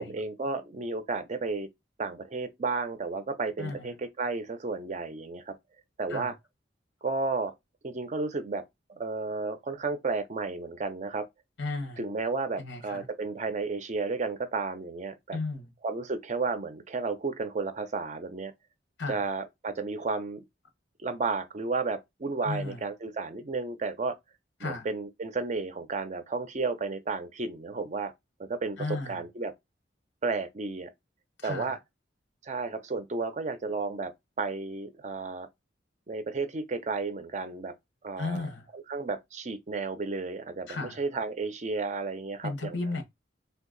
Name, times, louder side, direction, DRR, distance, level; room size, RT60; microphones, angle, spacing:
voice 1, 0.0-1.7 2.0-5.6 6.0-6.3 7.0-7.5 7.8-8.6 8.9-11.3 12.0-15.4 15.8-18.5 19.1-20.4 21.0-24.1 24.6-28.1 28.4-29.5 30.2-30.9 31.4-31.8 32.4-34.1 34.4-35.5 36.1-37.7 38.0-38.5 38.7-42.8, right 4 dB, 40° right, 0.5 m, -32 dB
voice 2, 3.6-3.9 6.1-6.3 11.6-12.0 12.6-13.0 15.3-15.7 19.0-19.2 22.4-22.8 24.6-24.9 28.8-29.2 31.4-31.7 38.2-38.6 40.7-41.0 42.4-43.0, left 3 dB, 85° left, 0.9 m, -34 dB
2.7 x 2.4 x 3.8 m
head